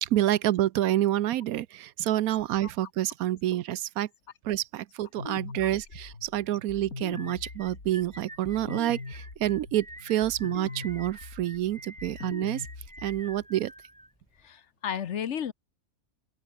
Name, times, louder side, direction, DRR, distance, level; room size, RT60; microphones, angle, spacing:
voice 1, 0.0-4.1 4.4-12.7 13.0-13.7, right 13 dB, 80° right, 1.1 m, -28 dB
sound 1, 5.2-13.5, left 3 dB, 80° left, 4.1 m, -42 dB
sound 2, 7.1-14.5, right 1 dB, 5° right, 0.7 m, -48 dB
voice 2, 14.4-15.5, left 8 dB, 55° left, 1.1 m, -33 dB
open air
omnidirectional pair, 1.5 m